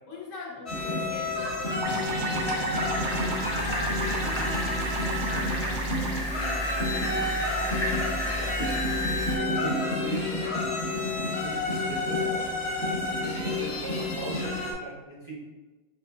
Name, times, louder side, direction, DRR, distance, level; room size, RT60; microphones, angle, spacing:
voice 1, 0.1-6.0 6.3-10.6, left 2 dB, 80° left, -2 dB, 1.3 m, -44 dB
sound 1, 0.7-14.7, left 2 dB, 60° left, 1.1 m, -30 dB
sound 2, 1.8-6.2, right 3 dB, 70° right, 0.8 m, -33 dB
sound 3, 2.1-9.4, equal, 20° left, 0.4 m, -33 dB
voice 2, 8.4-8.8 9.5-10.3 11.4-15.3, right 2 dB, 35° right, -5 dB, 0.5 m, -39 dB
4.2 x 2.6 x 3.5 m, 1.2 s
omnidirectional pair, 1.3 m